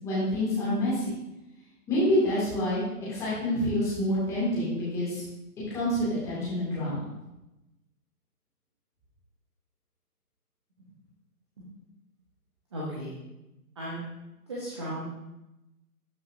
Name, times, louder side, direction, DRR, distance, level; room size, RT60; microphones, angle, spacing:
voice 1, 0.0-1.1 1.9-2.8 3.1-5.2 5.7-7.1, left 1 dB, 5° left, -10 dB, 2.2 m, -27 dB
voice 2, 12.7-13.1 13.7-14.0 14.5-15.0, equal, 20° right, -7 dB, 1.0 m, -35 dB
12.5 x 5.5 x 2.7 m, 0.94 s
figure-of-eight pair, 145°, 46 cm